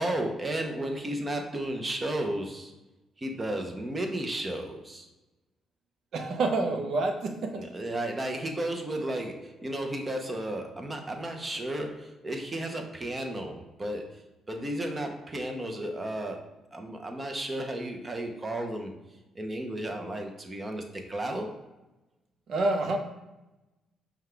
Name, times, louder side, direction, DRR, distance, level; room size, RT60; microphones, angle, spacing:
voice 1, 0.0-2.7 3.2-5.1 7.6-18.9 19.3-21.6, right 1 dB, 25° right, 3 dB, 0.7 m, -33 dB
voice 2, 6.1-7.6 22.5-23.0, right 2 dB, 65° right, 5 dB, 0.6 m, -28 dB
5.5 x 2.3 x 3.3 m, 1.0 s
cardioid pair, 90°, 0 cm